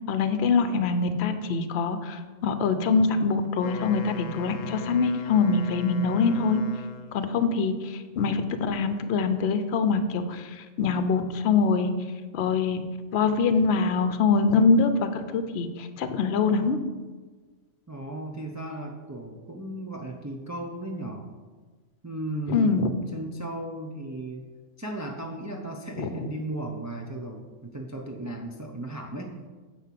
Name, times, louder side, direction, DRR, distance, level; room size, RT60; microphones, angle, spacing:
voice 1, 0.1-6.6 7.1-11.9 12.3-12.8 13.1-16.8 22.5-22.9 26.0-26.1, left 4 dB, 60° left, 9 dB, 0.9 m, -24 dB
Wind instrument woodwind instrument, 3.4-7.3, left 7 dB, 85° left, 1.1 m, -40 dB
voice 2, 17.9-21.3 22.0-24.4 24.8-29.4, right 1 dB, 20° right, 1 dB, 0.6 m, -35 dB
9.7 x 4.3 x 7.5 m, 1.4 s
omnidirectional pair, 1.3 m